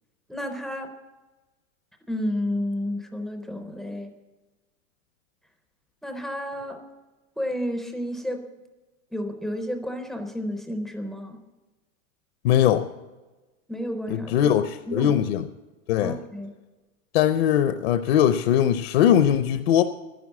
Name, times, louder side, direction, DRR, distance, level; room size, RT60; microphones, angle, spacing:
voice 1, 0.3-0.9 2.1-4.1 6.0-6.8 7.4-8.4 9.1-11.4 13.7-14.6 14.9-15.1 16.0-16.5, equal, ahead, 5 dB, 0.4 m, -31 dB
voice 2, 12.4-12.9 14.1-15.5 15.9-16.2 17.1-19.8, left 10 dB, 50° left, 10 dB, 0.6 m, -20 dB
11.0 x 11.0 x 7.3 m, 1.2 s
supercardioid pair, 155°, 41 cm